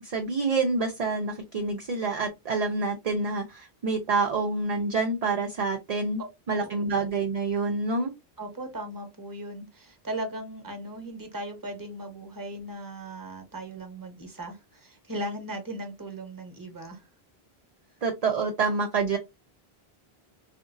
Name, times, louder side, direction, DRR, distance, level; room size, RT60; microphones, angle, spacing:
voice 1, 0.0-6.2 6.5-8.1 18.0-19.2, right 3 dB, 50° right, 0.5 m, -27 dB
voice 2, 8.4-17.0, right 1 dB, 20° right, 0.9 m, -38 dB
3.8 x 2.5 x 2.5 m
omnidirectional pair, 1.0 m